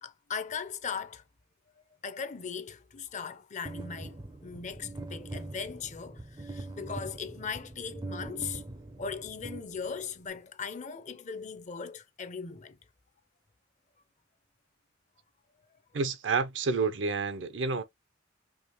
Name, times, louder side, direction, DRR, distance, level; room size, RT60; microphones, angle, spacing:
voice 1, 0.0-1.2 2.0-8.6 9.0-12.8, left 6 dB, 40° left, 0.6 m, -39 dB
sound 1, 3.7-10.3, right 2 dB, 20° right, 0.5 m, -42 dB
voice 2, 15.9-17.8, right 4 dB, 65° right, 0.6 m, -29 dB
4.9 x 2.8 x 2.9 m
head